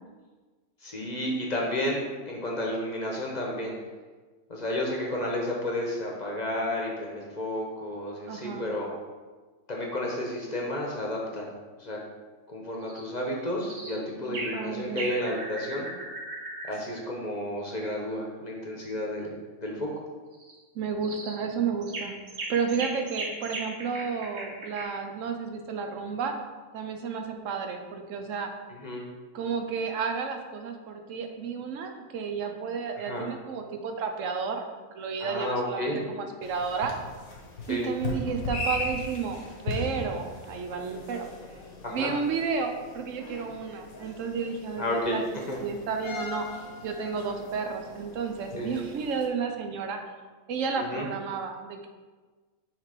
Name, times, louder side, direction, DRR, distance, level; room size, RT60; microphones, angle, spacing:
voice 1, 0.8-3.8 4.5-8.9 9.7-11.5 11.8-12.0 12.5-15.9 16.7-19.3 19.6-19.9 28.7-29.0 33.0-33.3 35.2-36.1 37.7-37.9 41.8-42.1 44.8-45.2 45.5-45.6 48.5-48.8 50.8-51.1, left 1 dB, 35° left, -2 dB, 0.9 m, -31 dB
voice 2, 8.3-8.7 14.3-15.1 20.7-22.2 22.5-26.3 26.7-28.5 29.3-36.9 37.7-41.3 41.9-44.8 45.1-45.2 45.6-46.5 46.8-50.0 50.5-51.9, right 5 dB, 70° right, 5 dB, 1.0 m, -32 dB
sound 1, 12.8-13.1 13.6-14.0 14.3-14.6 15.0-16.8 20.3-20.5 21.0-21.4 21.8-24.8, right 2 dB, 50° right, 1.2 m, -37 dB
sound 2, 36.4-49.3, left 3 dB, 75° left, 1.5 m, -38 dB
6.3 x 3.3 x 4.9 m, 1.4 s
omnidirectional pair, 1.5 m